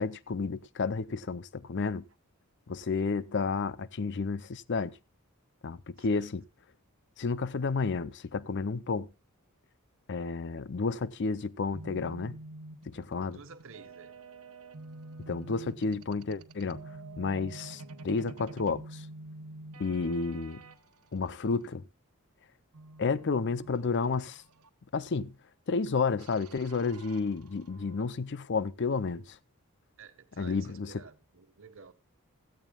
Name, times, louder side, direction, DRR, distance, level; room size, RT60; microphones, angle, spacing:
voice 1, 0.0-2.0 2.7-4.9 5.6-6.4 7.2-9.1 10.1-12.4 12.9-13.4 15.3-16.8 17.2-19.0 19.8-20.6 21.1-21.8 23.0-24.4 24.9-25.3 25.7-29.2 30.4-31.0, left 4 dB, 55° left, 0.5 m, -31 dB
voice 2, 6.0-6.3 13.3-14.1 30.0-31.9, right 5 dB, 60° right, 1.3 m, -52 dB
sound 1, 11.7-20.8 22.7-24.7 26.2-28.1, right 2 dB, 85° right, 1.2 m, -48 dB
16.0 x 14.5 x 2.3 m
head